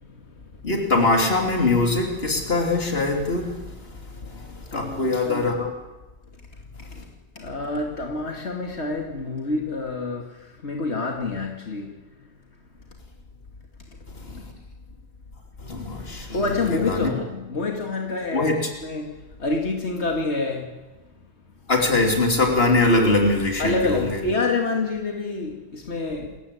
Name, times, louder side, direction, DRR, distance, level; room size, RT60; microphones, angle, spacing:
voice 1, 0.6-3.5 4.3-5.7 14.3-14.4 15.6-16.4 16.7-17.1 18.3-18.6 21.7-24.2, left 2 dB, 65° left, 2 dB, 3.4 m, -22 dB
voice 2, 4.7-5.5 7.4-11.9 16.3-20.7 23.6-26.4, left 3 dB, 85° left, 1 dB, 2.6 m, -27 dB
28.5 x 14.5 x 8.4 m, 1.2 s
omnidirectional pair, 1.1 m